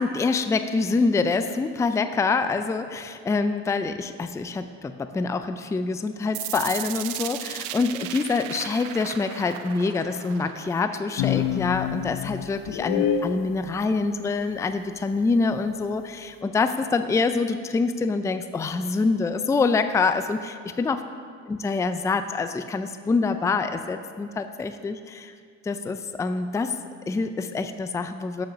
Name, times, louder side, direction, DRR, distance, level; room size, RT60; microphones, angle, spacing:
voice 1, 0.0-21.0 21.5-25.3 25.6-26.7 27.1-28.5, left 4 dB, 10° left, 10 dB, 0.4 m, -26 dB
sound 1, 6.3-12.3, right 13 dB, 90° right, 0.5 m, -37 dB
sound 2, 11.2-13.4, left 9 dB, 80° left, 0.5 m, -26 dB
7.1 x 6.3 x 6.1 m, 2.2 s
supercardioid pair, 90°, 34 cm